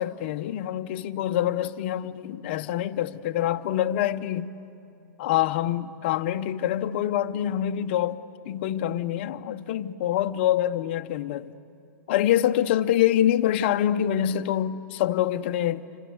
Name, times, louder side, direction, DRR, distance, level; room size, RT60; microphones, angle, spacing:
voice 1, 0.0-4.5 5.2-8.2 8.5-11.5 12.1-15.9, left 11 dB, 35° left, 0.7 m, -25 dB
27.0 x 25.5 x 7.8 m
hypercardioid pair, 175°, 10 cm